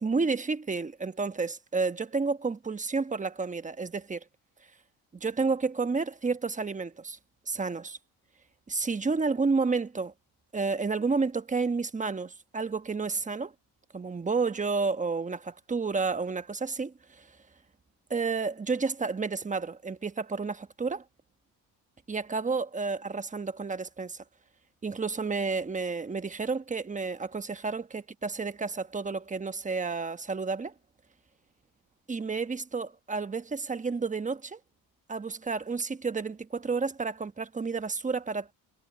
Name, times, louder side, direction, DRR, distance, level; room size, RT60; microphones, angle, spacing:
voice 1, 0.0-4.2 5.1-7.2 7.5-8.0 8.7-10.1 10.5-13.5 13.9-17.3 18.1-21.0 22.1-24.2 24.8-30.7 32.1-34.6 35.1-38.5, right 4 dB, 20° right, 1.1 m, -31 dB
cardioid pair, 100°, 39 cm